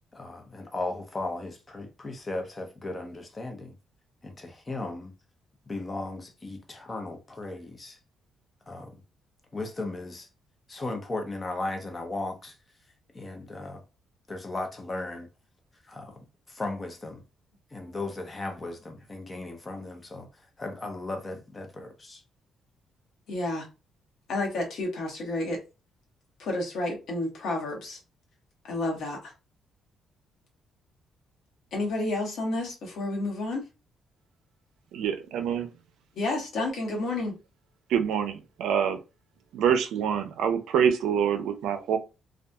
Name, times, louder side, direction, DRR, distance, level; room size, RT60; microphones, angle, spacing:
voice 1, 0.1-3.7 4.2-5.1 5.7-8.0 8.7-9.0 9.5-10.3 10.7-12.6 13.1-13.8 14.3-15.3 15.8-17.2 17.7-22.2, left 2 dB, 25° left, 0.8 m, -36 dB
voice 2, 23.3-23.7 24.3-25.6 26.4-28.0 28.6-29.3 31.7-33.6 36.2-37.4, left 2 dB, 75° left, 1.1 m, -30 dB
voice 3, 34.9-35.7 37.9-39.0 39.5-42.0, right 8 dB, 85° right, 0.4 m, -26 dB
2.7 x 2.3 x 2.3 m
cardioid pair, 90°, 0 cm